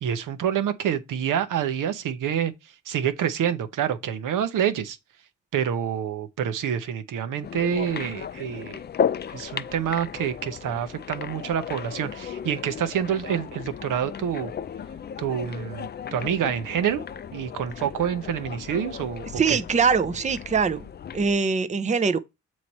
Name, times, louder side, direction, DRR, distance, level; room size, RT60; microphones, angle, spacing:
voice 1, 0.0-2.5 2.9-5.0 5.5-8.8 9.3-14.5 15.2-17.0 17.3-19.6, right 9 dB, 80° right, 0.8 m, -27 dB
sound 1, 7.4-21.4, left 8 dB, 35° left, 0.4 m, -35 dB
voice 2, 19.4-20.8 21.1-22.2, right 5 dB, 25° right, 0.5 m, -22 dB
7.4 x 3.2 x 4.1 m
cardioid pair, 80°, 31 cm